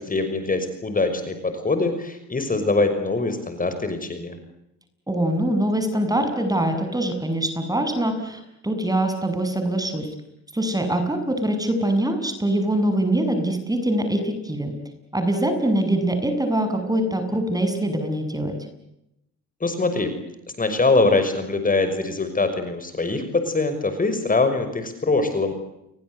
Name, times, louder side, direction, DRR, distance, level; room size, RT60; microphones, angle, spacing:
voice 1, 0.0-4.4 19.6-20.1 20.6-25.5, left 3 dB, 30° left, 9 dB, 6.0 m, -23 dB
voice 2, 5.1-10.1 10.5-14.7 15.1-18.5, right 1 dB, 10° right, 7 dB, 7.3 m, -23 dB
30.0 x 23.5 x 8.1 m, 0.85 s
cardioid pair, 90°, 30 cm